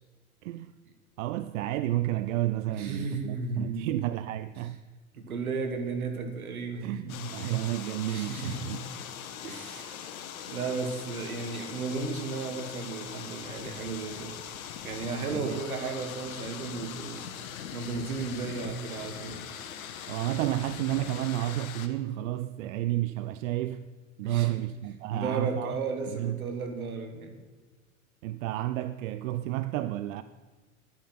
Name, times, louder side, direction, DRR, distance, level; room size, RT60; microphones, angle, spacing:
voice 1, 0.4-0.7 1.2-4.8 6.8-8.8 15.2-15.6 20.1-23.9 24.2-25.8 26.1-26.4 28.2-30.2, right 14 dB, 65° right, 0.5 m, -31 dB
voice 2, 2.7-4.0 5.1-7.5 8.1-9.0 9.4-9.9 10.5-14.3 14.8-17.2 17.7-19.4 24.2-24.6 25.1-27.4, right 4 dB, 85° right, 1.7 m, -34 dB
sound 1, 7.1-21.9, left 8 dB, 75° left, 1.1 m, -41 dB
10.5 x 9.4 x 5.8 m
hypercardioid pair, 85°, 42 cm